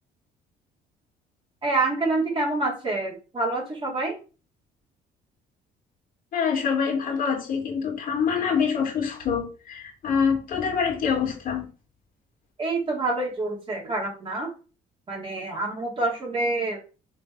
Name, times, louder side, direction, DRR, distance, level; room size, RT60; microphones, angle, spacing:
voice 1, 1.6-4.1 12.6-14.5 15.1-16.8, right 2 dB, 30° right, -2 dB, 2.9 m, -27 dB
voice 2, 6.3-11.7, left 6 dB, 55° left, 1 dB, 2.4 m, -25 dB
6.0 x 3.8 x 4.8 m, 0.35 s
cardioid pair, 110°, 17 cm